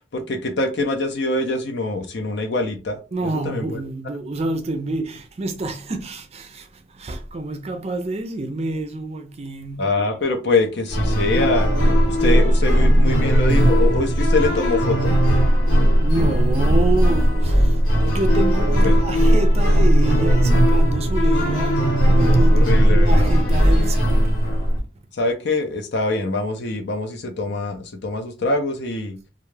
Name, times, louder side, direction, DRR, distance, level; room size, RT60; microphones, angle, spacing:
voice 1, 0.1-3.0 3.2-3.8 9.8-11.7 12.1-15.1 18.8-19.0 22.5-23.3 25.2-29.2, left 2 dB, 65° left, 0.6 m, -24 dB
voice 2, 3.1-9.9 16.0-24.3 24.6-24.7, right 2 dB, 35° right, 0.4 m, -28 dB
sound 1, 10.9-24.8, equal, 90° left, 1.4 m, -17 dB
2.4 x 2.3 x 3.1 m
head